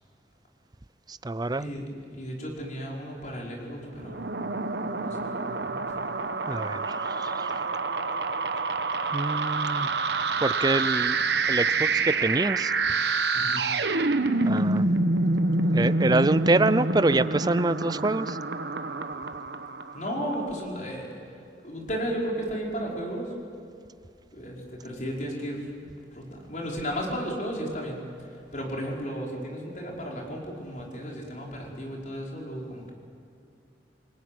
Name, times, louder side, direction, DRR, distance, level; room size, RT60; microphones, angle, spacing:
voice 1, 1.1-1.7 6.5-7.6 9.1-9.9 10.4-11.2 11.5-12.7 14.4-14.9 15.7-18.4, right 2 dB, 20° right, 15 dB, 0.5 m, -26 dB
voice 2, 2.1-4.3 4.8-5.8 13.3-13.7 19.9-21.1 21.6-23.3 24.3-32.9, equal, 45° left, -2 dB, 5.4 m, -34 dB
sound 1, 4.0-20.3, right 3 dB, 65° right, 1.2 m, -27 dB
28.5 x 20.0 x 9.5 m, 2.5 s
head